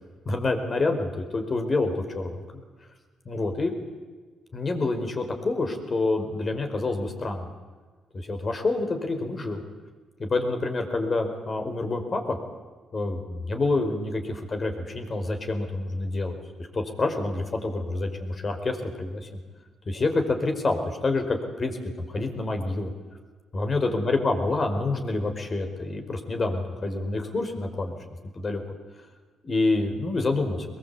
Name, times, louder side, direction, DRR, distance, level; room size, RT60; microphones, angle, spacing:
voice 1, 0.2-2.6 3.2-3.7 4.5-7.5 8.1-9.6 10.2-12.4 12.9-16.4 16.7-19.3 19.9-22.9 23.5-28.0 28.3-28.6 29.4-30.7, left 2 dB, 35° left, 5 dB, 5.0 m, -27 dB
24.5 x 22.0 x 8.6 m, 1.4 s
cardioid pair, 95°, 0 cm